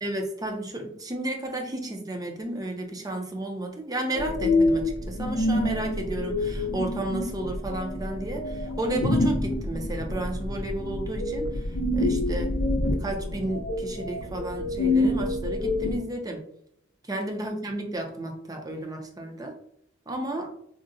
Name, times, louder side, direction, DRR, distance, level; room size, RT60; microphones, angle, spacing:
voice 1, 0.0-12.5 12.9-16.4 17.1-19.6 20.1-20.5, right 1 dB, 20° right, 2 dB, 0.5 m, -32 dB
sound 1, 4.1-16.0, left 2 dB, 85° left, 0.5 m, -27 dB
3.7 x 2.1 x 2.6 m, 0.72 s
head